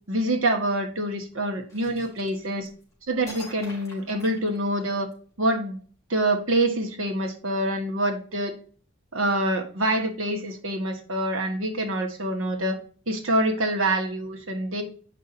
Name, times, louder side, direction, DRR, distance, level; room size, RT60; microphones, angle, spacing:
voice 1, 0.1-2.7 3.1-5.1 5.4-5.8 6.1-8.5 9.1-12.8 13.1-14.8, right 1 dB, 75° right, 3 dB, 1.6 m, -26 dB
sound 1, 1.7-2.8 3.3-5.1, left 2 dB, 15° left, 2.9 m, -45 dB
8.4 x 5.6 x 2.7 m, 0.41 s
head